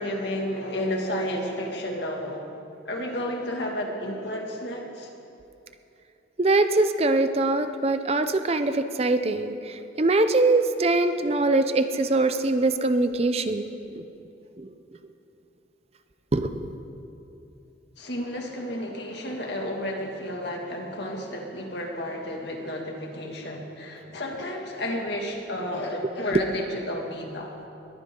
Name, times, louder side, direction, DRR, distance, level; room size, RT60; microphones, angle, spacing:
voice 1, 0.0-2.5 2.9-5.1 18.0-27.7, left 1 dB, 65° left, 0 dB, 2.2 m, -32 dB
voice 2, 6.4-9.5 10.0-13.7 14.6-14.7 16.3-16.7, right 2 dB, 35° right, 9 dB, 0.5 m, -22 dB
21.5 x 15.0 x 3.8 m, 2.8 s
head